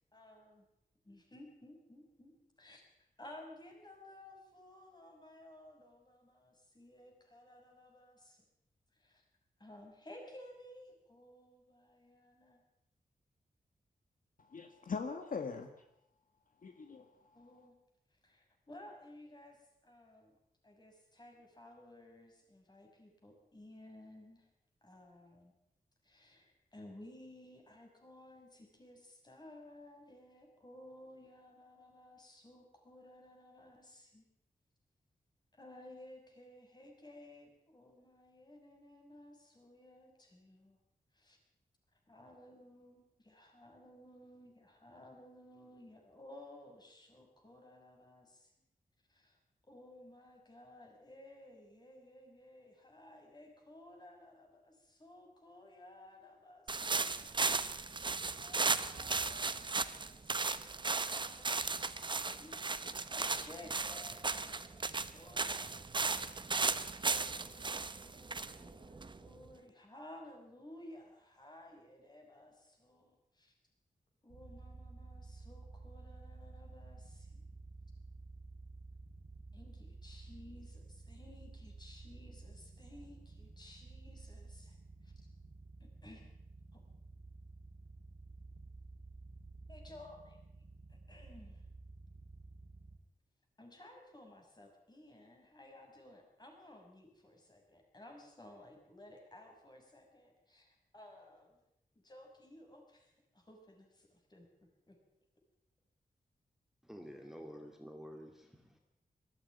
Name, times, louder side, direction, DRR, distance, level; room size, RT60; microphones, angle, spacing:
voice 1, 0.1-0.7 1.0-2.3 2.6-8.4 8.9-9.2 9.6-12.6 17.3-17.7 18.1-20.4 20.6-24.5 24.8-25.5 26.0-34.3 35.5-40.8 41.1-41.4 41.9-48.5 49.1-49.4 49.7-57.2 58.3-65.7 66.9-73.5 74.2-77.4 79.5-85.1 85.8-86.3 86.7-86.8 89.7-90.4 90.9-91.6 93.6-101.6 101.9-104.5 104.9-105.0, left 1 dB, 25° left, 2 dB, 6.1 m, -56 dB
voice 2, 14.4-15.7 16.6-17.4, left 5 dB, 65° left, 6 dB, 1.8 m, -41 dB
sound 1, 56.7-69.5, right 4 dB, 30° right, 0.9 m, -36 dB
sound 2, 74.3-93.0, right 3 dB, 60° right, 2.9 m, -52 dB
voice 3, 106.8-108.8, equal, ahead, 3 dB, 2.2 m, -50 dB
21.0 x 14.5 x 9.6 m, 0.81 s
wide cardioid pair, 150°, 15 cm